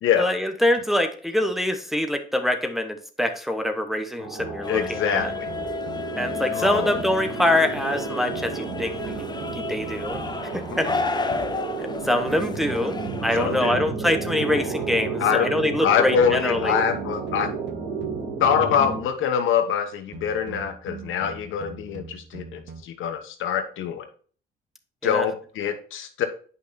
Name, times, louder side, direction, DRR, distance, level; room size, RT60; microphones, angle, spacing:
voice 1, 0.2-5.3 6.2-9.3 9.6-10.2 10.5-10.9 11.8-16.8 25.0-25.2, left 1 dB, ahead, 5 dB, 1.1 m, -25 dB
sound 1, 4.2-19.0, right 4 dB, 80° right, 3.9 m, -32 dB
sound 2, 4.4-7.4 8.3-11.3 12.3-15.3 16.2-19.2 20.1-22.8, right 6 dB, 65° right, 1.0 m, -42 dB
sound 3, 4.6-13.7, left 4 dB, 20° left, 0.7 m, -32 dB
voice 2, 4.7-5.5 6.5-7.0 13.4-13.8 15.2-15.5 15.8-17.5 18.4-24.1 25.0-26.3, left 8 dB, 85° left, 7 dB, 1.1 m, -24 dB
8.4 x 5.5 x 2.7 m, 0.43 s
cardioid pair, 90°, 20 cm